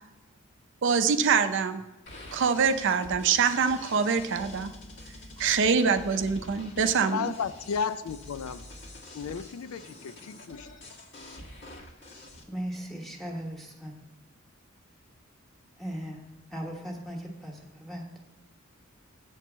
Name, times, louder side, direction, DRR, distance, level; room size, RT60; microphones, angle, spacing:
voice 1, 0.8-1.8 2.3-4.7 5.4-7.3, right 6 dB, 60° right, 10 dB, 0.5 m, -24 dB
sound 1, 2.1-12.4, left 1 dB, 60° left, 1.4 m, -46 dB
voice 2, 6.8-8.6 9.1-10.7, left 6 dB, 80° left, 14 dB, 0.4 m, -34 dB
voice 3, 12.5-13.9 15.8-16.2 16.5-18.1, equal, ahead, 0 dB, 1.3 m, -37 dB
8.0 x 4.5 x 7.2 m, 1.1 s
head